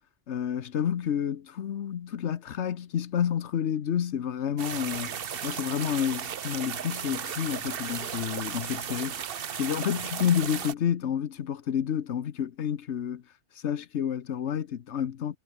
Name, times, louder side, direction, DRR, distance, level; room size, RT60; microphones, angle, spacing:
voice 1, 0.3-9.1 9.5-13.2 13.6-15.4, left 9 dB, 60° left, 1.1 m, -29 dB
sound 1, 4.6-10.7, right 8 dB, 50° right, 0.9 m, -35 dB
omnidirectional pair, 1.4 m